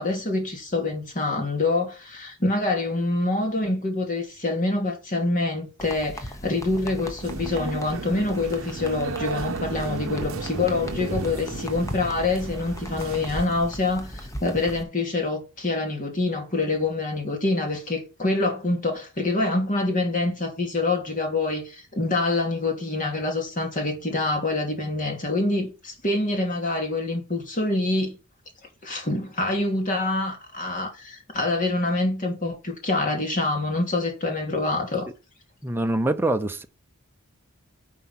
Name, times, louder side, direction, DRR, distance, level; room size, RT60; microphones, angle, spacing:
voice 1, 0.0-28.2 28.8-35.1, left 2 dB, 40° left, 2.7 m, -26 dB
sound 1, 5.8-14.8, equal, 15° left, 1.1 m, -37 dB
sound 2, 7.2-13.5, right 4 dB, 65° right, 0.7 m, -35 dB
voice 2, 35.6-36.7, right 2 dB, 10° right, 0.7 m, -24 dB
10.0 x 4.6 x 5.8 m
head